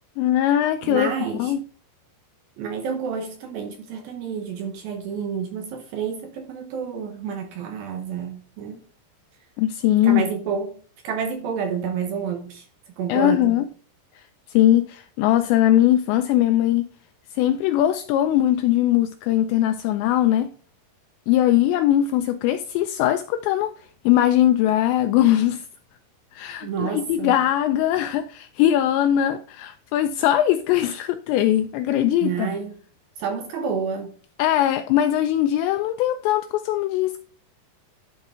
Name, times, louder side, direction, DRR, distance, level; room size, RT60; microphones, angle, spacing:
voice 1, 0.2-1.6 9.6-10.2 13.1-13.6 14.5-16.9 17.4-20.5 21.3-23.7 24.1-25.7 26.3-32.5 34.4-37.2, left 12 dB, 85° left, 2.5 m, -20 dB
voice 2, 0.8-1.5 2.6-8.8 10.0-10.8 11.0-12.7 13.0-13.5 26.6-27.4 32.2-32.8 33.2-34.1, right 6 dB, 75° right, 2.2 m, -29 dB
11.5 x 4.5 x 3.6 m
omnidirectional pair, 5.4 m